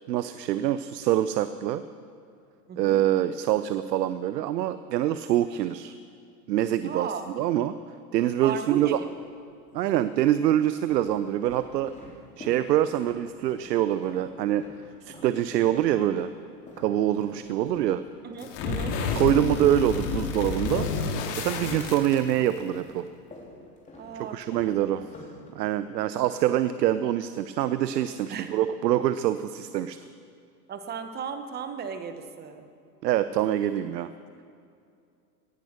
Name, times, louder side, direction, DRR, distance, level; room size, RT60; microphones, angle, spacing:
voice 1, 0.1-1.8 2.8-5.9 6.5-7.8 8.1-9.0 9.7-11.9 12.4-14.7 15.0-16.3 16.8-18.0 19.2-20.9 21.4-23.1 24.3-25.0 25.6-30.0 33.0-34.1, right 12 dB, 75° right, 12 dB, 0.7 m, -25 dB
voice 2, 2.7-3.0 6.8-7.4 8.4-9.0 18.2-19.0 24.0-25.0 28.3-28.5 30.7-32.7, right 6 dB, 20° right, 9 dB, 1.0 m, -36 dB
sound 1, 8.8-9.5 10.2-15.3 15.6-21.9 22.2-25.9, left 2 dB, 15° left, 3.3 m, -48 dB
sound 2, 18.4-22.6, left 5 dB, 40° left, 2.2 m, -30 dB
17.5 x 10.5 x 6.7 m, 2.4 s
hypercardioid pair, 125°, 50 cm